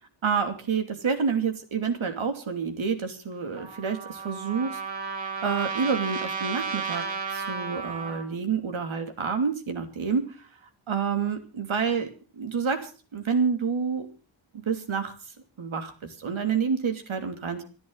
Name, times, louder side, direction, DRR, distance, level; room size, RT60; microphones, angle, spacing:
voice 1, 0.2-4.8 5.1-7.1 7.3-10.5 10.9-14.1 14.7-15.1 15.6-17.6, right 6 dB, 80° right, 6 dB, 2.9 m, -28 dB
Trumpet, 3.5-8.2, right 5 dB, 65° right, 3.3 m, -33 dB
27.0 x 10.5 x 4.0 m, 0.35 s
wide cardioid pair, 125°, 47 cm